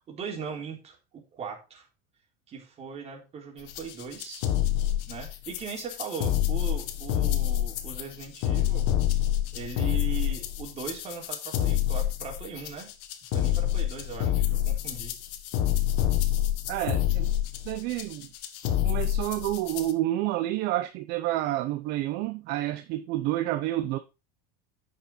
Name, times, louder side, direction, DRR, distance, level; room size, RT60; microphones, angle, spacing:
voice 1, 0.1-1.8 2.5-4.4 5.1-8.9 9.5-12.9 13.3-15.1, right 6 dB, 30° right, 4.0 m, -39 dB
sound 1, 3.7-19.9, left 12 dB, 60° left, 1.6 m, -27 dB
voice 2, 16.7-17.3 17.6-18.3 18.6-24.0, right 15 dB, 55° right, 0.9 m, -29 dB
10.0 x 6.6 x 4.4 m
supercardioid pair, 135°, 20 cm